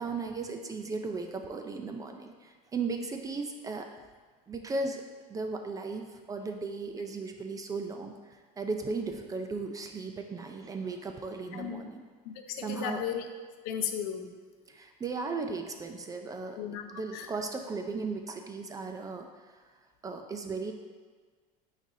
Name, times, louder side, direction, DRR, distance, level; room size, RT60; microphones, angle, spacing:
voice 1, 0.0-3.9 4.5-5.0 5.3-12.0 12.6-13.0 14.7-16.6 16.9-19.3 20.0-20.7, right 4 dB, 20° right, 4 dB, 0.4 m, -36 dB
voice 2, 11.5-11.9 12.2-13.3 13.6-14.3 16.6-17.3, left 9 dB, 80° left, 6 dB, 0.7 m, -35 dB
9.0 x 4.1 x 2.6 m, 1.5 s
cardioid pair, 135°, 19 cm